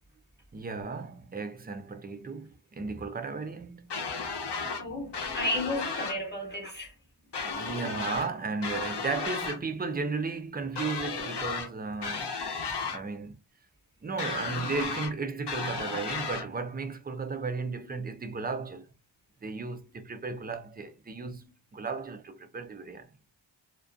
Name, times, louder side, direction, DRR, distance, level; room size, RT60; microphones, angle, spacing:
voice 1, 0.5-3.9 7.4-12.3 12.9-13.4 14.0-18.9 19.4-23.1, right 4 dB, 20° right, 0.3 m, -35 dB
sound 1, 3.9-4.8 5.1-6.2 7.3-8.3 8.6-9.6 10.8-11.7 12.0-13.0 14.2-15.1 15.5-16.5, left 4 dB, 55° left, 0.7 m, -34 dB
voice 2, 4.8-6.9, left 1 dB, 20° left, 0.8 m, -33 dB
2.4 x 2.2 x 2.5 m
wide cardioid pair, 70°, 49 cm